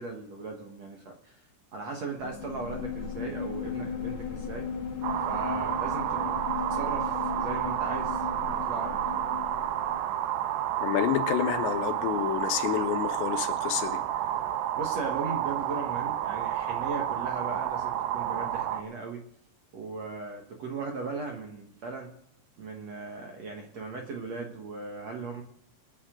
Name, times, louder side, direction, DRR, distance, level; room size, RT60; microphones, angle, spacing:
voice 1, 0.0-1.4 1.7-4.7 5.3-9.3 14.8-19.2 19.7-22.1 22.6-25.4, right 3 dB, 60° right, 1.9 m, -38 dB
sound 1, 2.2-10.0, left 6 dB, 45° left, 1.7 m, -36 dB
sound 2, 5.0-18.8, right 11 dB, 80° right, 2.9 m, -30 dB
voice 2, 10.8-14.0, left 11 dB, 90° left, 3.4 m, -29 dB
25.0 x 9.8 x 3.8 m
omnidirectional pair, 4.9 m